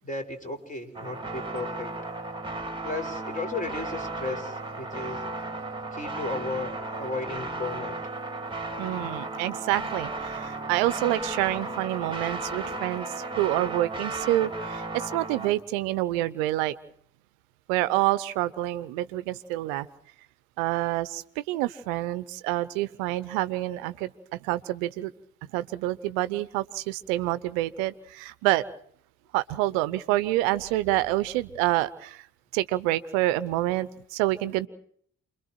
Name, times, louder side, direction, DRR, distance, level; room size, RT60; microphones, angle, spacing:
voice 1, 0.0-1.9 2.8-5.2 5.9-8.0, left 3 dB, 20° left, 5 dB, 5.7 m, -34 dB
sound 1, 0.9-15.5, right 2 dB, 15° right, 2.8 m, -35 dB
voice 2, 8.8-16.7 17.7-19.9 20.6-25.1 25.5-28.6 29.3-32.3 32.5-34.7, right 16 dB, 85° right, 16 dB, 0.8 m, -27 dB
29.0 x 23.0 x 4.6 m, 0.66 s
hypercardioid pair, 40°, 39 cm